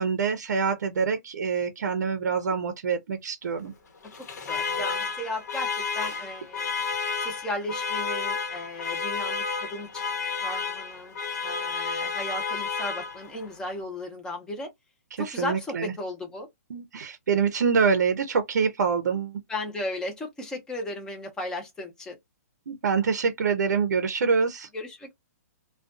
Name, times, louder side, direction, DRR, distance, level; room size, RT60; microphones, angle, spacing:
voice 1, 0.0-3.7 15.1-15.9 16.7-19.4 22.7-24.7, right 5 dB, 80° right, 0.6 m, -25 dB
Alarm, 4.0-13.5, left 5 dB, 75° left, 1.0 m, -31 dB
voice 2, 4.4-6.7 7.2-10.0 10.4-11.2 11.4-14.7 15.2-16.5 19.5-22.2 24.7-25.1, left 1 dB, 5° left, 0.7 m, -35 dB
2.4 x 2.2 x 2.4 m
hypercardioid pair, 160°, 9 cm